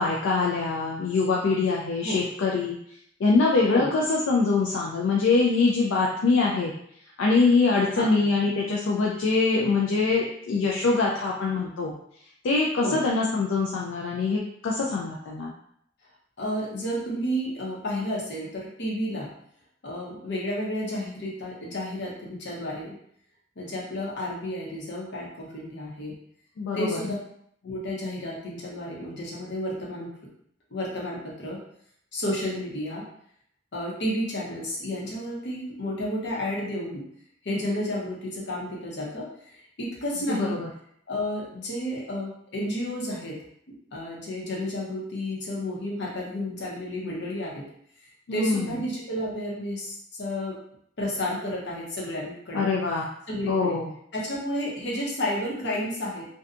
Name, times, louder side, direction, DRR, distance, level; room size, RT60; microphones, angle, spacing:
voice 1, 0.0-2.8 3.2-6.7 7.2-11.9 12.4-15.5 26.6-27.0 40.3-40.7 48.3-48.7 52.5-53.1 53.5-53.9, left 3 dB, 80° left, -3 dB, 0.4 m, -24 dB
voice 2, 16.4-19.3 19.8-22.9 23.6-26.1 26.7-27.2 27.6-30.1 30.7-31.6 32.1-33.0 33.7-37.0 37.4-40.6 41.1-43.4 43.9-47.6 48.3-50.6 51.0-52.7 53.3-53.8 54.1-56.3, left 1 dB, 65° left, -4 dB, 0.8 m, -31 dB
2.6 x 2.2 x 2.5 m, 0.70 s
head